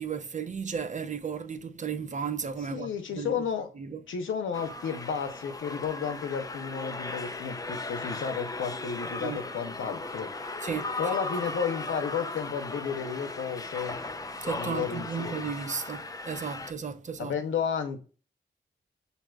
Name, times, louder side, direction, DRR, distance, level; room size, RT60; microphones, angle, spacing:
voice 1, 0.0-3.4 3.8-4.0 9.2-9.4 10.6-11.0 14.4-17.4, right 6 dB, 40° right, 0.5 m, -34 dB
voice 2, 2.7-3.7 4.1-10.5 11.0-14.0 14.6-15.5 17.2-18.0, left 7 dB, 85° left, 0.7 m, -32 dB
sound 1, 4.5-16.7, left 2 dB, 20° left, 0.4 m, -37 dB
6.1 x 2.7 x 2.2 m
cardioid pair, 55°, 20 cm